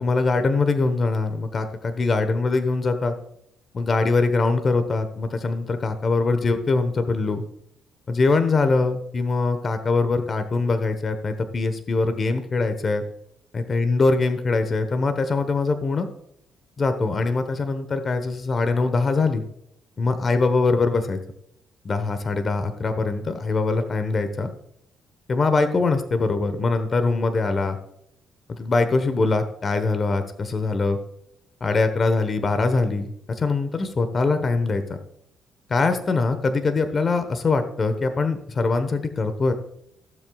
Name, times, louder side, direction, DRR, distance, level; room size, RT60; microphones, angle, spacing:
voice 1, 0.0-3.1 3.7-7.4 8.1-13.0 13.5-16.1 16.8-19.4 20.0-21.2 21.8-24.5 25.3-27.8 28.5-31.0 31.6-34.8 35.7-39.5, left 3 dB, 40° left, 8 dB, 1.1 m, -22 dB
15.5 x 7.5 x 2.4 m, 0.75 s
cardioid pair, 90°, 0 cm